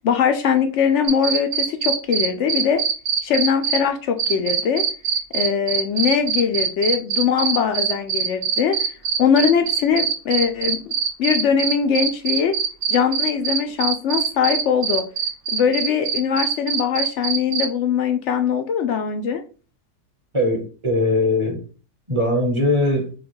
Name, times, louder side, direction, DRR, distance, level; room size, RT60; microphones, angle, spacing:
voice 1, 0.0-2.8 3.2-4.8 5.3-8.8 9.2-10.8 11.2-12.5 12.9-15.0 15.5-19.4, left 7 dB, 70° left, 0.7 m, -21 dB
sound 1, 1.0-3.8 4.2-17.6, right 7 dB, 55° right, 0.6 m, -22 dB
voice 2, 20.3-21.6 22.1-23.1, left 1 dB, 25° right, 0.9 m, -20 dB
4.9 x 2.3 x 4.6 m
omnidirectional pair, 1.7 m